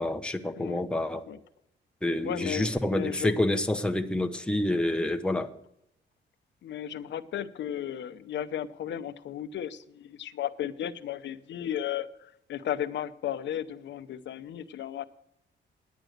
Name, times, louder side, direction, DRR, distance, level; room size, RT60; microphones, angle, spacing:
voice 1, 0.0-1.2 2.0-5.5, left 1 dB, 5° left, 5 dB, 0.9 m, -28 dB
voice 2, 2.2-3.4 6.6-15.0, left 10 dB, 75° left, 12 dB, 0.7 m, -34 dB
10.0 x 9.1 x 6.5 m, 0.78 s
cardioid pair, 100°, 19 cm